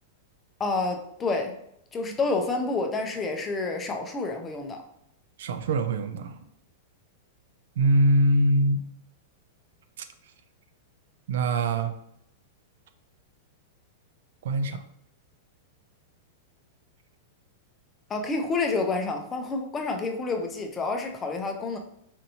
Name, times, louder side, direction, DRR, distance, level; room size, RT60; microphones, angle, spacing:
voice 1, 0.6-1.5 1.9-4.8 18.1-21.8, left 3 dB, 15° left, 3 dB, 0.5 m, -29 dB
voice 2, 5.4-6.4 7.8-8.9 10.0-10.1 11.3-11.9 14.4-14.8, right 1 dB, 75° right, 10 dB, 0.4 m, -23 dB
4.3 x 2.6 x 2.7 m, 0.75 s
supercardioid pair, 150°, 0 cm